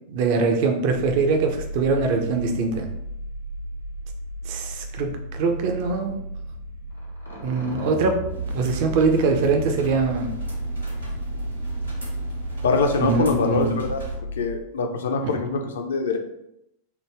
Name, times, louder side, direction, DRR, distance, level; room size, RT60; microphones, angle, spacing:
voice 1, 0.1-2.9 4.4-6.1 7.4-8.2 8.5-10.3 13.0-13.8 15.2-15.3, right 4 dB, 50° right, 4 dB, 0.4 m, -23 dB
sound 1, 0.9-14.6, right 1 dB, 90° left, 0.8 m, -33 dB
sound 2, 8.3-14.2, right 2 dB, 85° right, 1.1 m, -37 dB
voice 2, 12.6-14.0 14.4-16.2, left 4 dB, 65° left, 4 dB, 0.4 m, -24 dB
3.2 x 2.1 x 3.3 m, 0.82 s
figure-of-eight pair, 90°, 0 cm